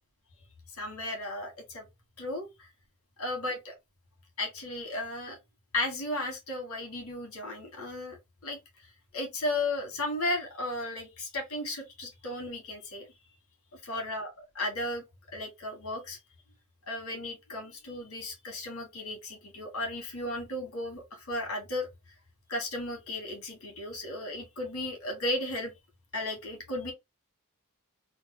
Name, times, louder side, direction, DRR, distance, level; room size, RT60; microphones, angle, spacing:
voice 1, 0.7-1.8 2.2-2.7 3.2-3.7 4.4-5.4 5.7-8.2 8.4-8.6 9.1-13.1 13.8-15.0 15.3-16.2 16.9-21.9 22.5-25.7 26.1-26.9, left 1 dB, 70° left, 1.7 m, -35 dB
3.6 x 2.3 x 3.1 m
head